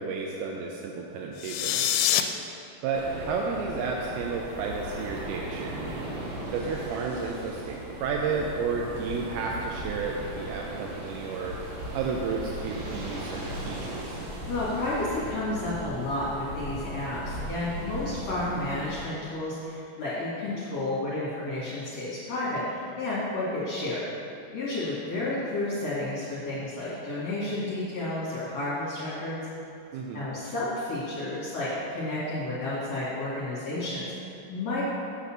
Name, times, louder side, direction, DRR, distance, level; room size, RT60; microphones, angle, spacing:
voice 1, 0.0-1.9 2.8-5.9 6.5-11.6 11.9-14.2 29.9-30.3, right 4 dB, 85° right, 0 dB, 2.5 m, -32 dB
sound 1, 1.4-2.2, left 12 dB, 85° left, 2.5 m, -25 dB
sound 2, 2.9-19.1, right 1 dB, 65° right, 2.7 m, -37 dB
voice 2, 14.5-24.0 24.5-29.4 30.1-34.8, left 2 dB, 50° left, -10 dB, 2.5 m, -31 dB
8.4 x 4.2 x 7.2 m, 2.8 s
omnidirectional pair, 4.4 m